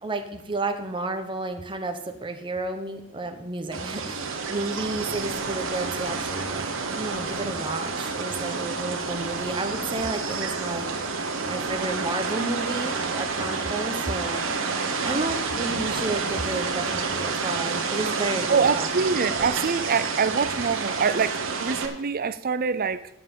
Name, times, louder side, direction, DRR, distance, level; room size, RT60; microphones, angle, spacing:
voice 1, 0.0-10.9 11.4-14.5 15.0-18.9 19.3-19.5, right 2 dB, 25° right, 1.0 m, -31 dB
sound 1, 3.7-21.9, right 4 dB, 70° right, 1.5 m, -29 dB
voice 2, 18.5-23.1, right 5 dB, 45° right, 0.6 m, -25 dB
9.0 x 7.5 x 7.5 m
head